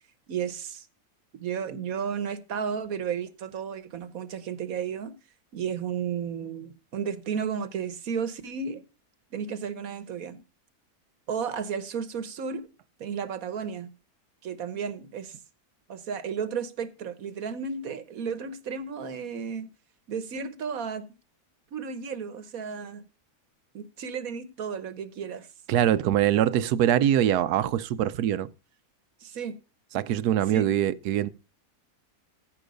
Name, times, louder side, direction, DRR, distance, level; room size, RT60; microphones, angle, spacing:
voice 1, 0.3-0.9 1.4-5.1 5.5-8.8 9.3-10.4 11.3-12.6 13.0-13.9 14.4-15.4 15.9-19.7 20.1-21.1 21.7-23.0 23.7-25.5 29.2-29.5 30.5-30.7, right 6 dB, 65° right, 1.4 m, -33 dB
voice 2, 25.7-28.5 29.9-31.3, right 11 dB, 85° right, 1.2 m, -23 dB
14.5 x 5.4 x 5.2 m
omnidirectional pair, 1.6 m